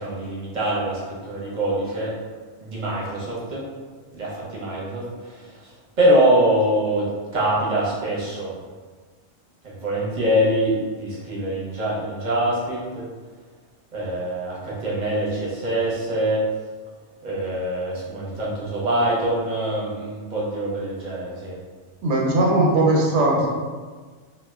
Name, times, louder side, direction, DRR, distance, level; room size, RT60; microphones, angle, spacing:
voice 1, 0.0-2.1 2.6-3.6 4.1-5.7 6.0-7.1 7.3-8.5 9.6-13.1 13.9-16.4 17.2-21.6, right 1 dB, 45° right, -6 dB, 0.8 m, -24 dB
voice 2, 22.0-23.5, right 2 dB, 85° right, -2 dB, 0.9 m, -19 dB
2.1 x 2.1 x 3.3 m, 1.5 s
omnidirectional pair, 1.2 m